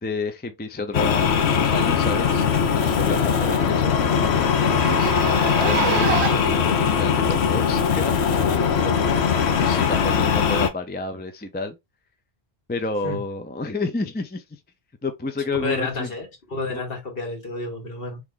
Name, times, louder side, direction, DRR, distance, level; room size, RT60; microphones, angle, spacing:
voice 1, 0.0-4.5 4.9-8.2 8.5-11.8 12.7-14.6 15.0-16.1 16.7-16.8, left 3 dB, 15° left, 0.4 m, -31 dB
sound 1, 0.9-10.7, left 7 dB, 85° left, 1.0 m, -20 dB
Zipper (clothing), 3.0-3.1 3.4-3.5 3.8-3.9 4.6-6.6 7.3-7.4 8.4-8.5, right 9 dB, 85° right, 0.8 m, -27 dB
voice 2, 15.6-18.2, left 2 dB, 60° left, 1.7 m, -30 dB
3.5 x 3.2 x 3.8 m
omnidirectional pair, 1.1 m